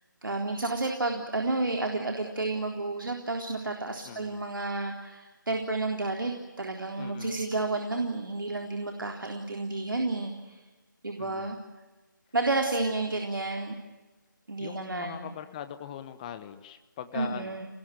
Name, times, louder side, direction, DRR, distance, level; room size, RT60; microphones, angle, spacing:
voice 1, 0.2-10.6 11.0-11.6 12.3-13.8 14.5-15.3 17.1-17.7, right 2 dB, 80° right, 3 dB, 3.7 m, -31 dB
voice 2, 4.0-4.4 7.0-7.4 11.2-11.6 14.6-17.6, left 10 dB, 20° left, 10 dB, 1.2 m, -41 dB
29.5 x 20.0 x 9.1 m, 1.2 s
figure-of-eight pair, 160°, 11 cm